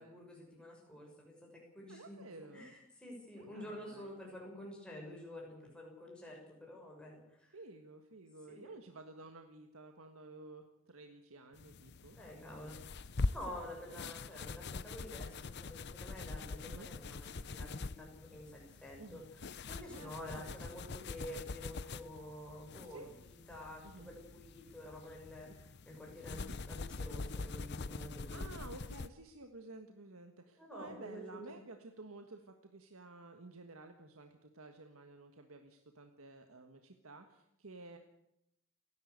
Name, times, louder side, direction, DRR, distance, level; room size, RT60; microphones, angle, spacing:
voice 1, 0.0-2.3 2.5-7.6 8.5-8.7 12.1-12.8 13.3-19.2 19.7-28.6 30.6-31.4, left 1 dB, 5° left, -2 dB, 6.4 m, -49 dB
voice 2, 1.9-2.8 3.3-4.1 5.0-5.2 7.5-12.2 12.6-13.3 13.6-14.4 16.6-16.9 19.0-19.3 19.9-21.5 22.8-23.1 23.8-24.1 25.4-25.6 26.3-26.6 28.3-38.0, right 2 dB, 80° right, 5 dB, 1.7 m, -53 dB
sound 1, 11.6-29.1, left 3 dB, 50° left, 0.7 m, -44 dB
29.0 x 11.5 x 8.2 m, 0.81 s
head